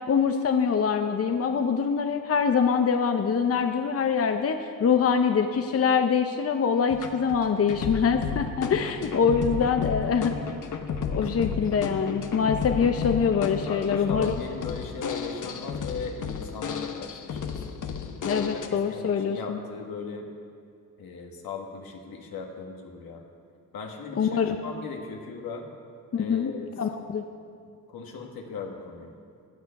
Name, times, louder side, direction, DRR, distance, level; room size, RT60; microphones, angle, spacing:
voice 1, 0.1-10.3 11.1-14.3 18.2-19.6 24.2-24.6 26.1-27.2, left 6 dB, 40° left, 6 dB, 0.8 m, -24 dB
sound 1, 6.9-18.7, left 6 dB, 60° left, 1.1 m, -33 dB
voice 2, 8.6-8.9 11.0-11.5 13.7-17.6 18.3-20.3 21.0-23.2 23.7-25.7 26.1-26.7 27.9-29.1, left 5 dB, 80° left, 2 dB, 1.9 m, -38 dB
16.0 x 9.3 x 5.9 m, 2.3 s
cardioid pair, 90°, 35 cm